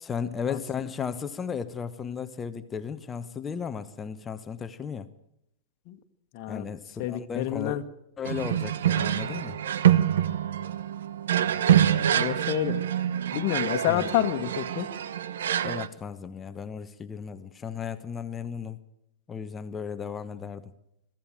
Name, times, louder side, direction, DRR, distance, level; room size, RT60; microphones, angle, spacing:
voice 1, 0.0-5.1 6.5-7.8 8.2-9.6 13.9-14.1 15.6-18.8 19.3-20.6, left 7 dB, 20° left, 11 dB, 1.0 m, -35 dB
voice 2, 6.3-6.7 7.0-7.8 11.9-12.8 13.3-14.9, left 13 dB, 45° left, 6 dB, 1.5 m, -28 dB
sound 1, 8.2-15.9, right 10 dB, 65° right, 1.1 m, -25 dB
22.5 x 14.0 x 9.0 m, 0.81 s
figure-of-eight pair, 100°, 0 cm